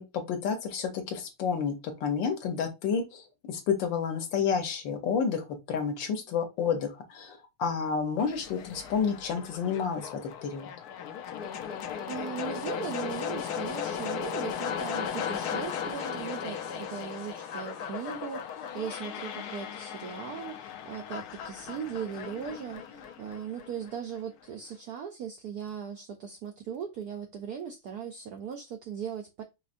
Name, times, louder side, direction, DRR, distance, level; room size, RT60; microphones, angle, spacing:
voice 1, 0.0-10.7, left 6 dB, 65° left, 1.4 m, -30 dB
sound 1, 8.2-24.2, left 8 dB, 85° left, 0.8 m, -37 dB
voice 2, 12.1-29.4, right 7 dB, 90° right, 0.8 m, -38 dB
5.2 x 3.1 x 2.5 m
omnidirectional pair, 2.4 m